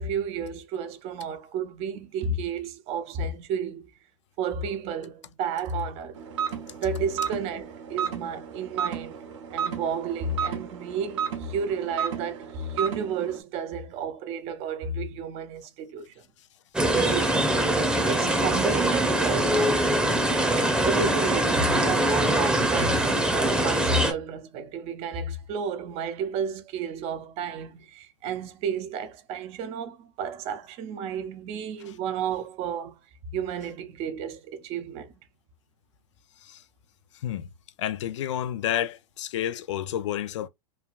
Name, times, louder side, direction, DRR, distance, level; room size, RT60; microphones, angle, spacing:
voice 1, 0.0-3.9 4.4-6.2 6.8-9.2 9.5-16.1 16.9-17.6 18.1-19.9 20.6-33.0 33.3-35.1, right 5 dB, 40° right, 0.7 m, -32 dB
sound 1, 6.1-13.4, right 7 dB, 70° right, 1.1 m, -33 dB
sound 2, 16.7-24.1, right 1 dB, 5° right, 0.8 m, -23 dB
voice 2, 37.8-40.5, left 11 dB, 70° left, 0.5 m, -30 dB
3.3 x 2.3 x 2.4 m
hypercardioid pair, 115°, 16 cm